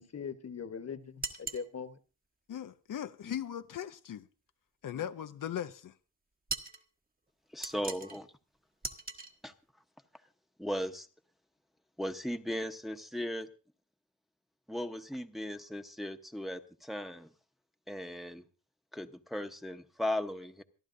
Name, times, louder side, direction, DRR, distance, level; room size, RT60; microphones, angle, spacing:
voice 1, 0.0-2.0 3.2-3.4 4.9-5.1, left 6 dB, 50° left, 1.2 m, -41 dB
sound 1, 1.2-1.7 6.5-6.8 7.6-8.2 8.8-9.3, right 3 dB, 25° right, 1.2 m, -39 dB
voice 2, 2.5-4.3 4.8-5.9, left 10 dB, 80° left, 0.6 m, -39 dB
voice 3, 7.5-8.3 9.4-9.5 10.6-11.1 12.0-13.5 14.7-17.3 17.9-18.4 18.9-20.6, left 1 dB, ahead, 0.9 m, -37 dB
27.0 x 11.5 x 2.6 m
wide cardioid pair, 90°, 32 cm